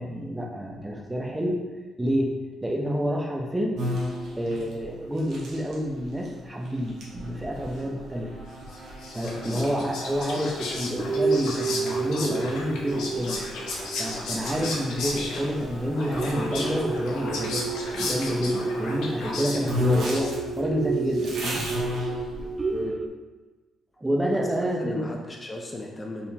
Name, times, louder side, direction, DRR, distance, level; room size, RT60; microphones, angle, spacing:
voice 1, 0.0-1.6 2.0-2.3 2.6-3.8 4.4-8.4 9.1-13.4 14.0-17.6 17.9-21.7 24.0-25.1, equal, 15° right, -1 dB, 0.7 m, -28 dB
sound 1, 3.7-7.7 8.1-8.2 9.3-9.4 9.9-10.0 10.5-10.7 11.0-23.1, right 4 dB, 30° right, 0.3 m, -32 dB
sound 2, 3.8-16.9 17.6-19.0 19.3-19.4 19.6-22.8, left 1 dB, 70° right, 1.2 m, -36 dB
Whispering, 8.7-20.7, left 3 dB, 80° left, 0.8 m, -35 dB
voice 2, 24.3-26.3, left 1 dB, 25° left, 1 dB, 0.5 m, -37 dB
4.3 x 3.5 x 2.8 m, 1.2 s
cardioid pair, 90°, 0 cm